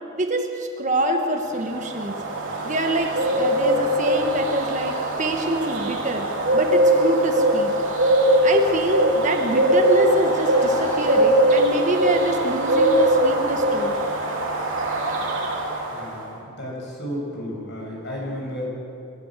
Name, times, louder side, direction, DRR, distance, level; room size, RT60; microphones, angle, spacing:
voice 1, 0.1-2.2 2.6-6.3 6.5-7.7 8.4-13.9, right 1 dB, 35° right, 4 dB, 1.5 m, -26 dB
sound 1, 1.5-16.1, right 1 dB, 60° right, 3.2 m, -21 dB
Laughter / Crowd, 9.7-13.2, equal, 20° left, 6.0 m, -35 dB
voice 2, 15.9-18.7, equal, 55° left, -2 dB, 6.6 m, -32 dB
27.5 x 12.5 x 7.5 m, 2.7 s
head